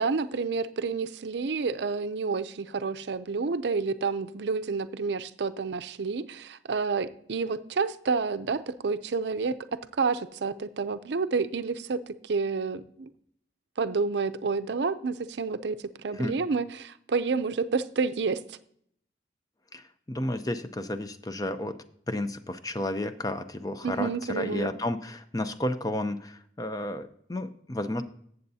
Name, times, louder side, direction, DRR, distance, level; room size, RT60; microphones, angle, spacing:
voice 1, 0.0-13.1 13.8-15.8 16.0-18.6 23.8-24.7, right 4 dB, 70° right, 12 dB, 0.5 m, -29 dB
voice 2, 20.1-21.8 22.1-28.0, left 1 dB, 20° left, 10 dB, 0.5 m, -32 dB
14.5 x 8.0 x 2.7 m, 0.66 s
head